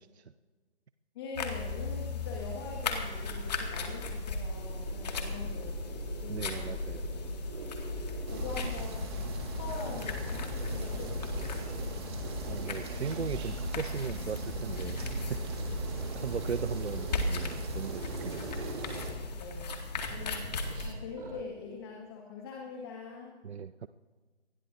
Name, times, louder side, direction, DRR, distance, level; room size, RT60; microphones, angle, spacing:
voice 1, 1.2-5.9 6.2-6.9 8.3-12.0 19.4-20.5 20.8-23.3, left 4 dB, 20° left, 0 dB, 1.8 m, -43 dB
sound 1, 1.3-20.9, left 3 dB, 40° left, 2.2 m, -37 dB
sound 2, 2.4-8.9 9.3-13.7 14.3-19.4 19.7-21.4, right 3 dB, 50° right, 3.1 m, -47 dB
voice 2, 6.3-7.1 12.5-15.4 16.1-18.6 23.4-23.9, right 7 dB, 70° right, 14 dB, 0.6 m, -38 dB
sound 3, 8.3-19.1, right 2 dB, 25° right, 2.0 m, -40 dB
24.5 x 20.0 x 2.7 m, 1.4 s
figure-of-eight pair, 150°, 34 cm